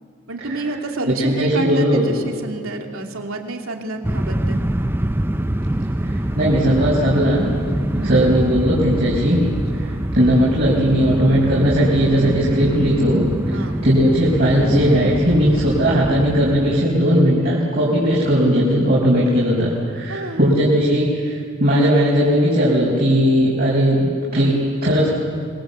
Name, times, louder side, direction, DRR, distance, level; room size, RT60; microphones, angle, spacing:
voice 1, 0.3-4.6 7.9-8.3 10.2-10.4 13.5-13.8 20.1-20.4, right 2 dB, 90° right, 3 dB, 2.7 m, -29 dB
voice 2, 1.1-2.1 6.0-7.5 8.0-9.4 9.8-13.2 13.8-25.1, equal, 45° right, -6 dB, 5.4 m, -18 dB
sound 1, 4.0-16.8, right 1 dB, 10° right, 0.6 m, -24 dB
26.0 x 23.0 x 8.2 m, 2.1 s
head